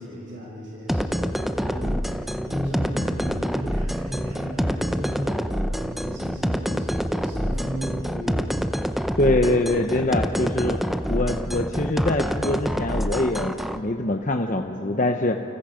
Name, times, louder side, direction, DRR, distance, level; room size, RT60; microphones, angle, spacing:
voice 1, 0.0-8.4 9.6-9.8, equal, 70° right, -4 dB, 5.7 m, -35 dB
sound 1, 0.9-13.8, equal, ahead, 0.6 m, -26 dB
voice 2, 9.2-10.8 11.1-15.4, left 2 dB, 40° left, 4 dB, 0.9 m, -24 dB
30.0 x 29.0 x 5.2 m, 2.9 s
head